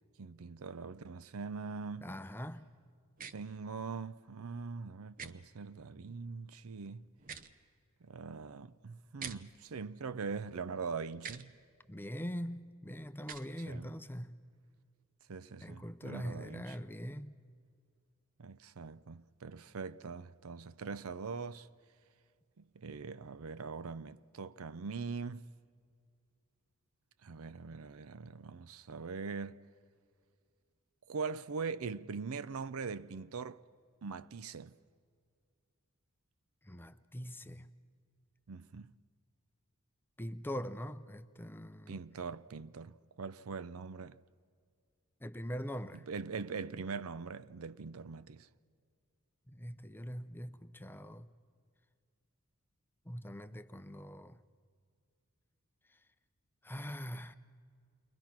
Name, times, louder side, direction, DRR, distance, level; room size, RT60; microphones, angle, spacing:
voice 1, 0.2-2.1 3.3-7.1 8.0-11.5 13.7-13.9 15.3-16.8 18.4-21.7 22.6-25.4 27.2-29.6 31.1-33.6 34.0-34.8 38.5-38.9 41.9-44.2 46.1-48.5, right 5 dB, 75° right, 0.6 m, -42 dB
voice 2, 2.0-2.7 11.9-14.5 15.6-17.4 36.6-37.8 40.2-42.0 45.2-46.0 49.5-51.3 53.1-54.4 56.6-57.4, equal, 10° left, 0.6 m, -42 dB
sound 1, 3.2-3.3 5.2-5.3 7.2-7.5 9.2-9.4 11.2-11.4 13.2-13.5, right 6 dB, 40° right, 0.8 m, -44 dB
29.0 x 22.0 x 5.9 m
head